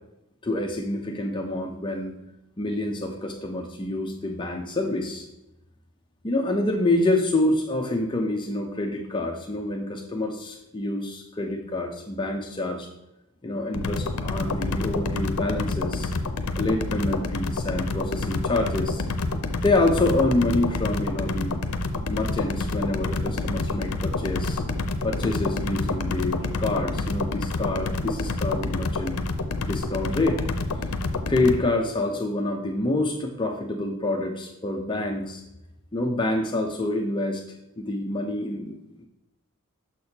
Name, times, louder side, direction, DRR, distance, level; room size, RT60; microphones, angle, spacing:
voice 1, 0.4-2.2 2.6-5.3 6.2-12.9 13.4-16.1 16.6-19.0 19.6-21.6 22.1-24.6 25.0-29.2 29.6-30.5 31.3-35.4 35.9-37.4 37.8-39.1, left 2 dB, 20° left, 1 dB, 0.6 m, -27 dB
sound 1, 13.7-31.6, left 2 dB, 80° left, 0.6 m, -28 dB
6.5 x 6.1 x 2.8 m, 0.89 s
head